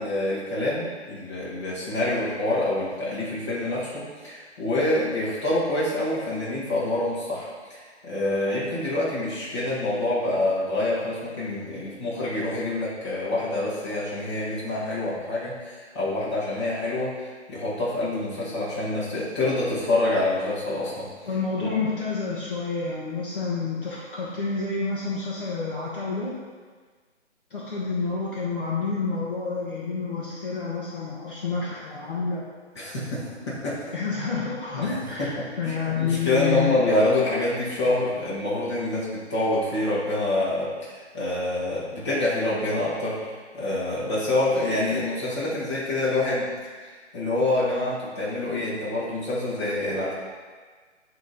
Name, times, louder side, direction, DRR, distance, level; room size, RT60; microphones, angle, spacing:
voice 1, 0.0-21.1 21.6-21.7 32.7-33.8 34.8-43.2 43.5-46.5 46.8-50.1, left 2 dB, 25° left, -9 dB, 1.3 m, -26 dB
voice 2, 21.3-26.3 27.5-32.4 33.9-36.7, left 4 dB, 45° left, -6 dB, 1.0 m, -29 dB
8.1 x 3.1 x 3.9 m, 1.5 s
hypercardioid pair, 175°, 36 cm